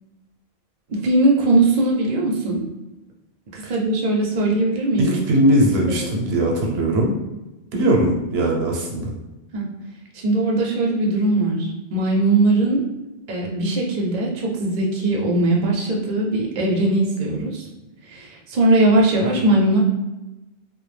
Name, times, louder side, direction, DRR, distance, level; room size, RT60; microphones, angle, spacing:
voice 1, 0.9-2.6 3.5-5.2 9.5-9.6 10.1-12.8 13.3-17.6 18.1-19.8, right 2 dB, 55° right, -1 dB, 0.6 m, -20 dB
voice 2, 5.0-7.2 7.7-9.1, right 1 dB, 85° right, 0 dB, 0.9 m, -20 dB
2.2 x 2.0 x 3.1 m, 1.0 s
omnidirectional pair, 1.0 m